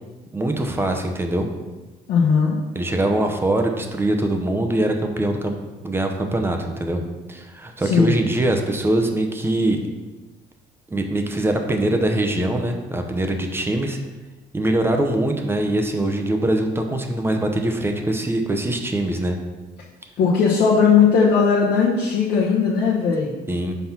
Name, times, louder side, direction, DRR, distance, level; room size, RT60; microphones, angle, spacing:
voice 1, 0.3-1.5 2.7-5.5 5.8-7.0 7.3-9.8 10.9-14.0 14.5-19.4 23.5-23.8, right 1 dB, 15° right, 4 dB, 0.9 m, -22 dB
voice 2, 2.1-2.6 7.8-8.2 20.2-23.3, left 6 dB, 70° left, -5 dB, 1.1 m, -18 dB
5.7 x 4.2 x 5.9 m, 1.2 s
cardioid pair, 110°, 17 cm